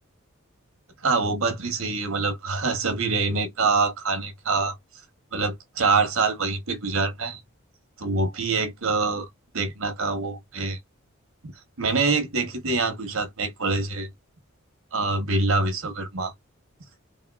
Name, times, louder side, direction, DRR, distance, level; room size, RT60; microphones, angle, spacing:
voice 1, 1.0-4.8 5.3-7.4 8.0-9.3 9.5-10.8 11.8-14.1 14.9-16.3, right 3 dB, 85° right, 1.0 m, -25 dB
3.6 x 2.2 x 2.3 m
head